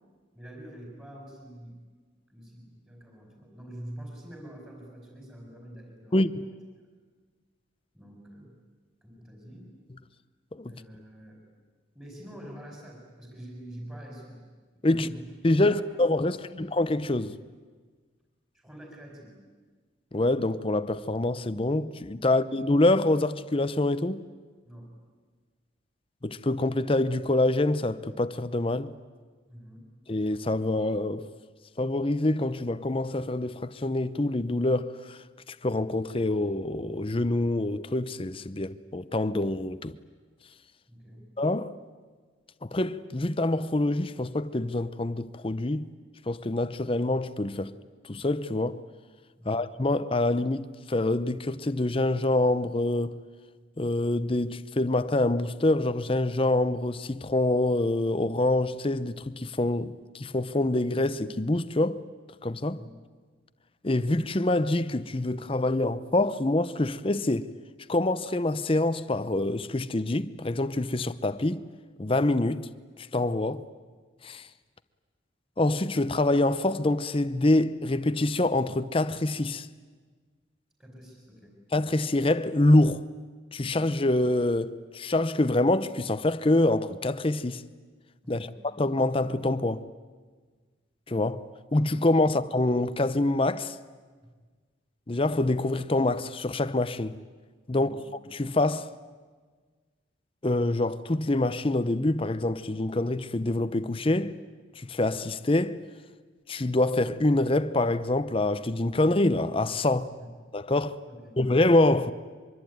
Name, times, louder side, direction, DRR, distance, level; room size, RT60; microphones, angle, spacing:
voice 1, 0.3-1.8 2.3-6.5 7.9-8.5 9.0-9.7 10.7-11.4 11.9-14.5 14.7-15.9 16.2-16.6 18.5-19.4 24.6-24.9 29.5-29.8 40.9-41.3 49.4-49.6 62.7-63.0 80.8-81.5 88.2-88.6 97.7-98.0 110.2-110.3 111.1-111.4, equal, 10° right, 4.8 m, -46 dB
voice 2, 6.1-6.4 10.5-10.8 14.8-15.1 15.4-17.3 20.1-24.2 26.2-28.9 30.1-31.3 31.8-35.2 35.5-39.9 41.4-41.8 42.6-45.9 46.3-47.7 48.1-48.8 49.5-53.2 53.8-62.0 62.4-62.8 63.8-67.5 67.9-71.6 72.0-72.7 73.1-73.6 74.2-74.4 75.6-79.7 81.7-83.0 83.5-87.6 88.3-89.8 91.1-91.5 91.7-93.8 95.1-97.2 97.7-98.9 100.4-104.4 104.8-105.8 106.5-110.1 110.5-111.0 111.4-112.1, left 2 dB, 30° left, 0.7 m, -26 dB
24.0 x 23.5 x 9.3 m
head